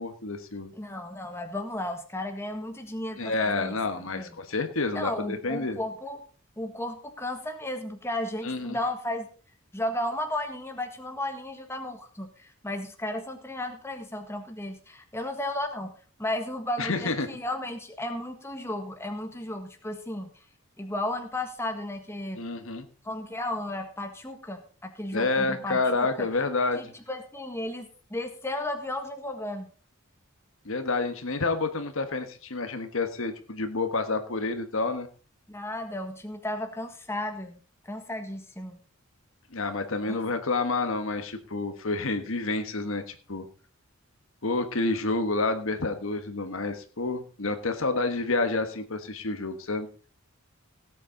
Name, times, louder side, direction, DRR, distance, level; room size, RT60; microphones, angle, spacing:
voice 1, 0.0-0.7 3.2-5.8 8.4-8.8 16.8-17.3 22.4-22.9 25.1-26.9 30.6-35.1 39.5-43.4 44.4-49.9, left 3 dB, 65° left, 8 dB, 1.4 m, -29 dB
voice 2, 0.7-4.3 4.9-6.2 6.6-9.3 9.7-15.9 16.2-20.3 20.8-22.4 23.0-26.3 26.7-27.8 28.1-29.7 35.5-38.8 40.1-40.2, left 1 dB, 10° left, 5 dB, 1.6 m, -34 dB
17.5 x 8.5 x 3.9 m, 0.39 s
head